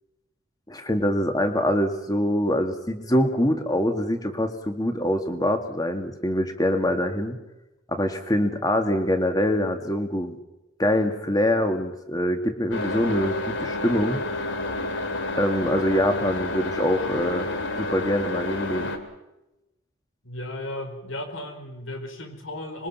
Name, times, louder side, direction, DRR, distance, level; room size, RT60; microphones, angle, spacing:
voice 1, 0.7-7.4 7.9-10.4 10.8-14.2 15.3-17.5 17.8-18.9, left 1 dB, 20° left, 5 dB, 2.2 m, -24 dB
sound 1, 12.7-19.0, left 2 dB, 65° left, 2.7 m, -30 dB
voice 2, 20.2-22.9, left 1 dB, 85° left, 6 dB, 4.7 m, -35 dB
26.0 x 22.5 x 5.9 m, 0.96 s
head